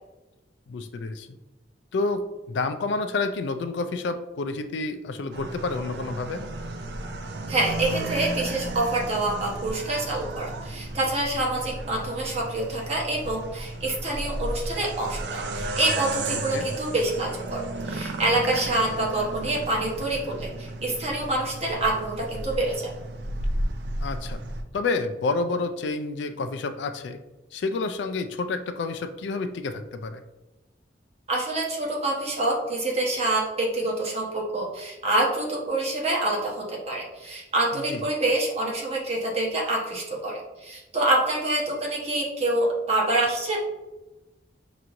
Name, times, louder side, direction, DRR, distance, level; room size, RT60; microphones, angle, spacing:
voice 1, 0.7-1.4 1.9-2.2 2.5-6.4 16.3-16.7 24.0-24.4 24.7-27.2 27.5-30.2 37.9-38.0, left 3 dB, 70° left, 9 dB, 0.3 m, -29 dB
sound 1, 5.3-24.6, right 2 dB, 65° right, 0.5 m, -34 dB
voice 2, 7.5-22.9 31.3-43.6, right 2 dB, 35° right, -3 dB, 1.1 m, -26 dB
5.7 x 3.0 x 2.5 m, 1.1 s
head